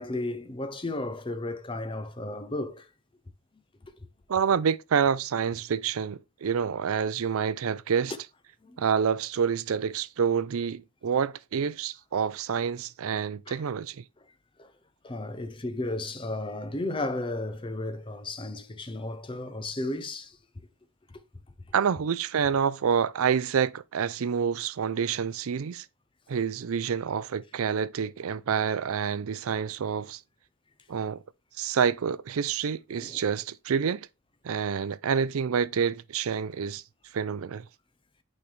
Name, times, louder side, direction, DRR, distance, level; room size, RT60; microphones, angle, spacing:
voice 1, 0.0-2.9 8.6-8.8 13.5-13.6 14.6-14.7 15.0-20.4 33.0-33.2, left 2 dB, 25° left, 0.6 m, -34 dB
voice 2, 4.3-8.1 8.8-14.0 21.7-25.9 26.3-30.2 30.9-31.2 31.6-34.1 34.4-36.8 37.1-37.7, right 7 dB, 70° right, 0.4 m, -28 dB
8.6 x 4.0 x 3.2 m
head